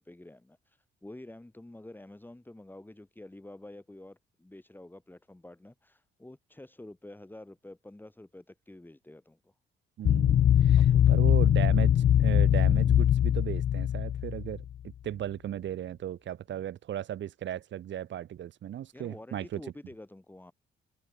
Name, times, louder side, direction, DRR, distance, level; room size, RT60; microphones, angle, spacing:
voice 1, 0.0-9.5 10.7-11.4 18.9-20.5, left 1 dB, 10° left, 4.4 m, -49 dB
voice 2, 10.0-19.6, right 11 dB, 70° right, 2.6 m, -36 dB
sound 1, 10.1-14.7, left 10 dB, 50° left, 0.5 m, -22 dB
cardioid pair, 90°, 20 cm